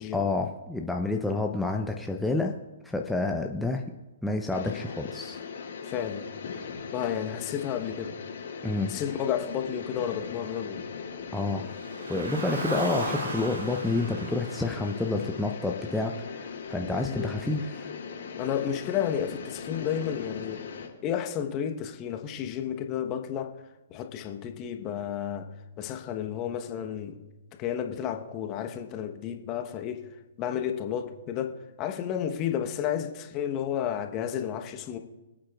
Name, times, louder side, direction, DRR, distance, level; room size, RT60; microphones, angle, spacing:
voice 1, 0.1-2.5 2.8-3.8 4.2-5.4 8.6-9.0 11.3-11.7 12.1-17.9, left 2 dB, 5° left, 0.7 m, -29 dB
sound 1, 4.5-20.9, left 6 dB, 55° left, 2.4 m, -39 dB
voice 2, 5.8-6.2 6.9-8.2 8.9-10.8 17.1-17.3 18.3-20.6 21.0-23.5 23.9-25.5 25.8-27.2 27.6-30.0 30.4-35.0, left 9 dB, 30° left, 1.1 m, -32 dB
Car, 11.7-16.1, right 1 dB, 70° right, 3.4 m, -36 dB
25.5 x 8.7 x 2.4 m
figure-of-eight pair, 120°, 0 cm